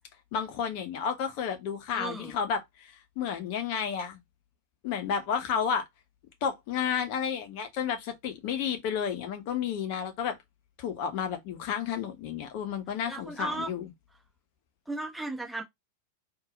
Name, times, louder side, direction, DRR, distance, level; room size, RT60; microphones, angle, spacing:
voice 1, 0.3-4.2 4.8-5.8 6.4-10.3 10.8-13.9, left 7 dB, 45° left, 1.1 m, -31 dB
voice 2, 1.9-2.4 13.1-13.7 14.9-15.6, right 2 dB, ahead, 1.9 m, -35 dB
4.6 x 2.7 x 3.8 m
figure-of-eight pair, 90°, 0 cm